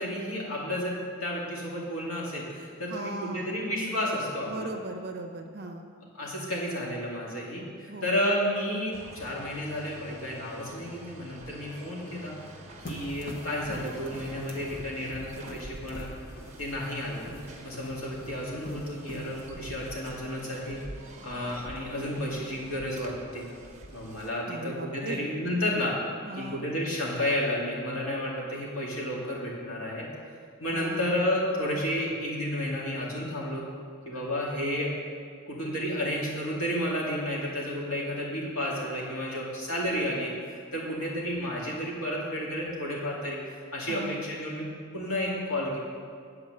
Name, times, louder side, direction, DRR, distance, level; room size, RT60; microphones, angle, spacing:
voice 1, 0.0-4.7 6.1-12.4 12.8-16.1 16.6-17.3 17.6-20.8 21.2-23.5 23.9-26.0 26.3-30.1 30.6-33.7 34.1-34.9 35.5-40.3 40.7-43.4 43.7-44.7 44.9-45.8, left 1 dB, 75° left, -4 dB, 2.4 m, -31 dB
voice 2, 2.9-3.7 4.5-5.9 7.9-8.3 24.4-25.2 26.2-26.7 30.7-31.2 43.9-44.2, right 2 dB, 50° right, 4 dB, 0.8 m, -38 dB
sound 1, 8.9-24.3, right 1 dB, 35° right, 1.2 m, -47 dB
sound 2, 12.8-19.6, equal, 45° left, 1.4 m, -44 dB
8.9 x 4.9 x 7.6 m, 2.2 s
head